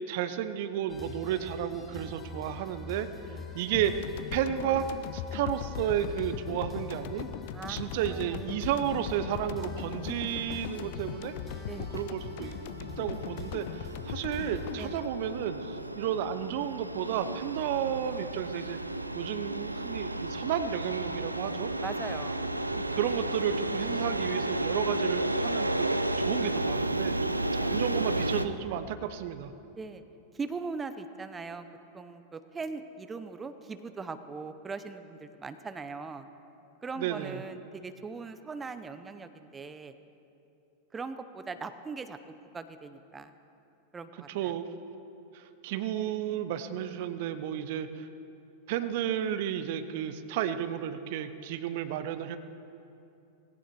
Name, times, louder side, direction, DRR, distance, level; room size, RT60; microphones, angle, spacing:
voice 1, 0.1-3.1 3.5-3.9 4.3-4.9 5.1-7.3 7.7-11.3 11.8-12.6 13.0-18.8 19.1-21.7 22.7-29.5 37.0-37.4 44.3-44.7 45.3-48.1 48.7-52.4, right 10 dB, 50° right, 11 dB, 0.8 m, -32 dB
sound 1, 0.9-15.1, left 4 dB, 15° left, 1.6 m, -44 dB
sound 2, 3.7-16.2, left 12 dB, 50° left, 0.5 m, -40 dB
voice 2, 7.5-8.4 11.7-11.9 14.8-15.0 15.8-15.9 21.8-22.5 29.8-30.0 30.3-31.7 31.9-36.3 36.8-39.9 40.9-42.2 42.5-43.3 43.9-44.5, right 4 dB, 15° right, 10 dB, 0.8 m, -40 dB
sound 3, 9.5-28.5, right 2 dB, 85° right, 0.6 m, -33 dB
18.5 x 16.5 x 4.6 m, 2.7 s
figure-of-eight pair, 90°, 0 cm